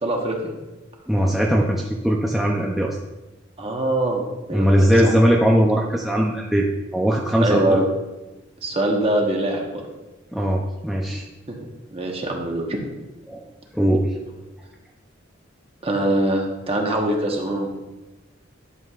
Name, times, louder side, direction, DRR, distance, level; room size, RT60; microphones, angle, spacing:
voice 1, 0.0-0.5 3.6-5.1 7.4-7.9 8.6-9.8 11.5-11.6 11.9-12.8 15.8-17.7, right 1 dB, 30° right, 1 dB, 1.2 m, -23 dB
voice 2, 1.1-3.0 4.5-6.7 6.9-7.8 10.3-11.3 13.3-13.4 13.7-14.2, equal, ahead, -3 dB, 0.6 m, -20 dB
11.0 x 7.3 x 2.5 m, 1.1 s
head